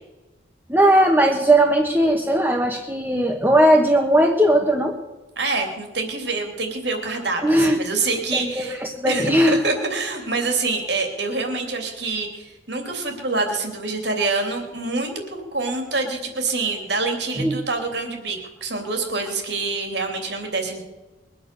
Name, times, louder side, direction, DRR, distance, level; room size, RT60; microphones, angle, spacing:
voice 1, 0.7-4.9 7.4-7.8 8.3-9.6 17.4-17.6, right 1 dB, 10° right, 1 dB, 1.2 m, -18 dB
voice 2, 5.4-8.8 9.0-20.8, right 3 dB, 60° right, 3 dB, 3.1 m, -26 dB
22.0 x 8.8 x 6.9 m, 1.1 s
head